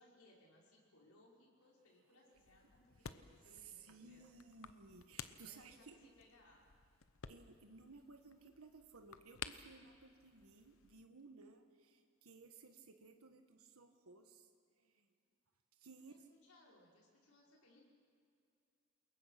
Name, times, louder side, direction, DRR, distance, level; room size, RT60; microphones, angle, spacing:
voice 1, 0.0-4.2 5.3-6.7 16.0-17.9, left 1 dB, 90° left, -3 dB, 5.7 m, -67 dB
sound 1, 2.3-11.1, left 7 dB, 75° left, 0.9 m, -55 dB
voice 2, 3.5-6.0 7.3-14.5 15.8-16.2, right 4 dB, 85° right, 6 dB, 1.5 m, -59 dB
28.0 x 21.5 x 5.9 m, 2.4 s
head